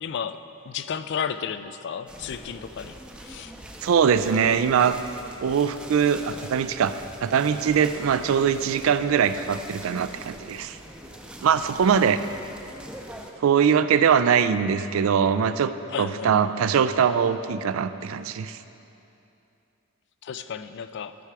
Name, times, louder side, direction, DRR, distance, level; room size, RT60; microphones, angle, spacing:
voice 1, 0.0-3.5 15.9-16.4 20.2-21.2, left 7 dB, 55° left, 12 dB, 0.3 m, -33 dB
sound 1, 2.1-13.3, right 1 dB, 5° right, 0.5 m, -43 dB
voice 2, 3.8-5.0 5.4-10.8 11.4-12.2 13.4-15.7 16.0-18.6, right 7 dB, 70° right, 12 dB, 0.4 m, -22 dB
13.0 x 5.7 x 4.8 m, 2.8 s
head